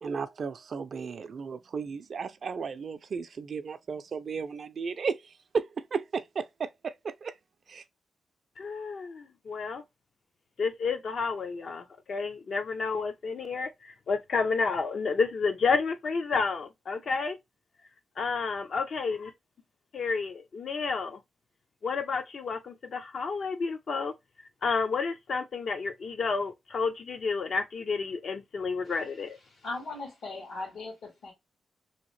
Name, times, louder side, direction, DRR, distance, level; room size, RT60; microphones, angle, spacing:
voice 1, 0.0-5.2 5.5-7.3 7.7-7.8, right 5 dB, 60° right, 0.4 m, -34 dB
voice 2, 8.6-9.8 10.6-17.4 18.2-19.3 19.9-21.2 21.8-24.1 24.6-29.4, left 4 dB, 60° left, 0.5 m, -30 dB
voice 3, 29.5-31.3, left 2 dB, 85° left, 1.4 m, -38 dB
2.8 x 2.7 x 3.0 m
cardioid pair, 70°, 0 cm